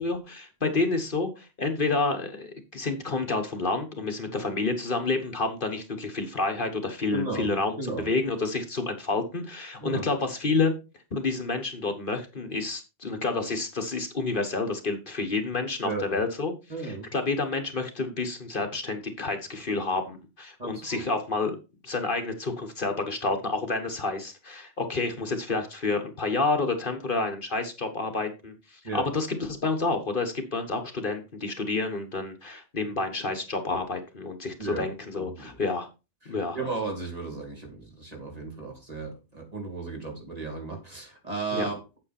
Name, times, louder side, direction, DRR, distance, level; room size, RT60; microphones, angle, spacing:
voice 1, 0.0-10.8 11.1-16.5 16.8-21.6 21.8-35.9 36.3-36.6 41.5-41.7, left 3 dB, 55° left, 5 dB, 1.6 m, -29 dB
voice 2, 7.1-7.5 7.8-8.1 9.8-10.1 15.8-16.2 16.7-17.1 20.6-21.0 28.8-29.0 34.6-34.9 35.1-35.6 36.2-42.0, right 3 dB, 35° right, 1 dB, 3.0 m, -35 dB
8.6 x 7.9 x 4.3 m, 0.29 s
omnidirectional pair, 1.1 m